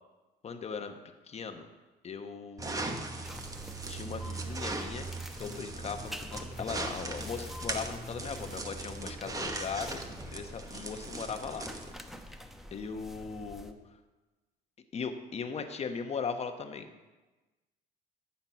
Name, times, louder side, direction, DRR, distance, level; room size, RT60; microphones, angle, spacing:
voice 1, 0.4-1.0 1.3-1.7 2.0-2.9 3.9-5.1 5.4-11.7 12.7-13.8 14.9-16.9, left 5 dB, 40° left, 7 dB, 1.0 m, -38 dB
sound 1, 2.6-11.9, right 2 dB, 20° right, 1.1 m, -39 dB
sound 2, 3.2-13.7, equal, ahead, 0.8 m, -47 dB
13.5 x 5.8 x 5.8 m, 1.2 s
cardioid pair, 110°, 17 cm